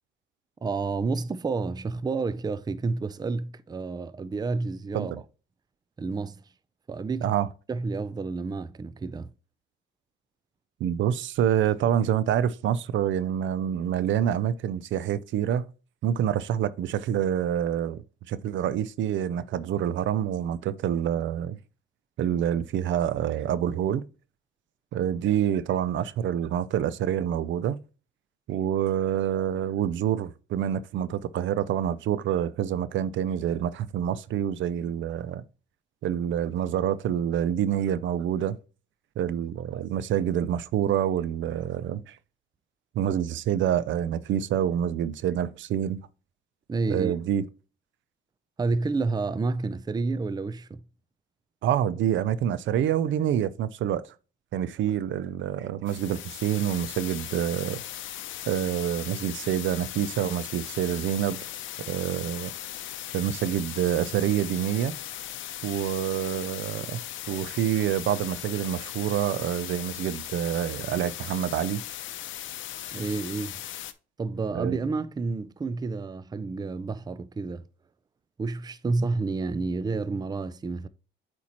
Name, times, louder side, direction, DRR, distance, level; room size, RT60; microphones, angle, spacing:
voice 1, 0.6-5.1 6.0-6.4 6.9-7.3 7.7-9.3 46.7-47.1 48.6-50.8 72.9-73.6 74.2-77.6 78.4-80.9, right 3 dB, 20° right, 0.4 m, -30 dB
voice 2, 10.8-15.7 16.0-21.6 22.2-24.0 24.9-27.8 28.5-35.4 36.0-38.6 39.2-42.2 42.9-46.0 46.9-47.5 51.6-54.0 54.5-57.8 58.5-61.5 61.9-62.5 63.1-64.9 65.6-67.0 67.3-71.8 74.5-74.8, right 10 dB, 70° right, 0.5 m, -27 dB
sound 1, 55.9-73.9, left 12 dB, 80° left, 0.6 m, -38 dB
8.3 x 4.4 x 2.9 m
cardioid pair, 90°, 20 cm